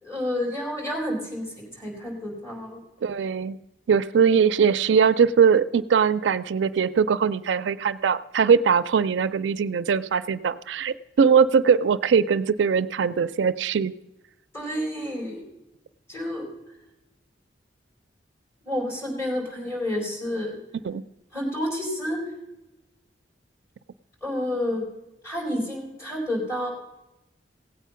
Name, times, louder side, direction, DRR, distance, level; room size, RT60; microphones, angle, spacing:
voice 1, 0.0-2.8 14.5-15.4 16.1-16.4 18.6-20.6 21.3-22.2 24.2-24.8 25.2-26.7, left 1 dB, 15° left, -3 dB, 4.0 m, -29 dB
voice 2, 3.0-3.6 3.9-13.9 20.8-21.0, right 6 dB, 75° right, 15 dB, 0.4 m, -21 dB
16.5 x 8.2 x 5.7 m, 0.96 s
head